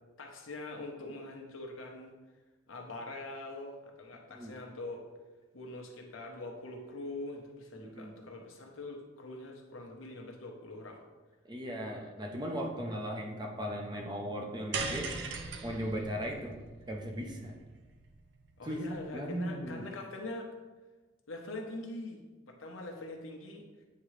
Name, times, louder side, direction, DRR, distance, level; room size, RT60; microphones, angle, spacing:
voice 1, 0.2-2.1 2.7-5.0 5.5-11.0 18.6-20.5 21.3-22.2 22.5-23.6, left 2 dB, 85° left, 1 dB, 0.9 m, -43 dB
voice 2, 7.8-8.2 11.4-15.2 15.6-16.6 16.9-17.6 18.6-18.8 19.1-19.8, equal, 20° right, 0 dB, 0.6 m, -37 dB
sound 1, 14.7-19.1, right 4 dB, 60° right, 0.5 m, -40 dB
8.4 x 3.7 x 3.2 m, 1.3 s
head